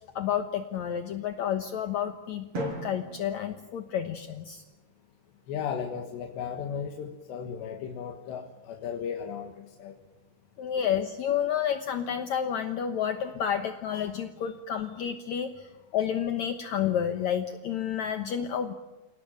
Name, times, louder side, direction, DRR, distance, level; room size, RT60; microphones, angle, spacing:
voice 1, 0.2-4.6 10.6-15.7 15.9-18.7, left 9 dB, 70° left, 7 dB, 1.8 m, -30 dB
Drum, 2.5-4.5, right 2 dB, 35° right, 5.4 m, -39 dB
voice 2, 5.5-10.0 10.8-10.9, left 7 dB, 90° left, 4 dB, 3.7 m, -35 dB
29.0 x 18.5 x 9.1 m, 1.2 s
omnidirectional pair, 4.9 m